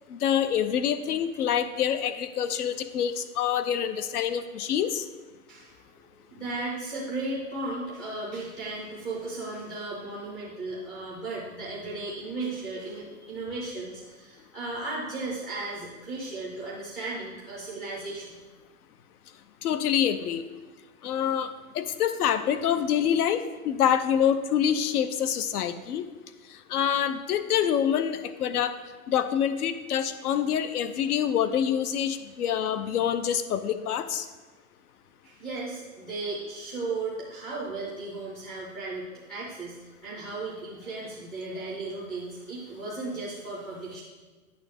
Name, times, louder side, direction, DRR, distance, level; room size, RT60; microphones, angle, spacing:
voice 1, 0.1-5.0 19.6-20.4 21.0-26.1 26.7-28.8 29.1-34.3, left 9 dB, 90° left, 11 dB, 0.7 m, -26 dB
voice 2, 5.5-5.8 6.3-18.4 35.2-44.0, right 2 dB, ahead, -7 dB, 0.3 m, -35 dB
8.9 x 6.1 x 3.5 m, 1.3 s
hypercardioid pair, 150°, 44 cm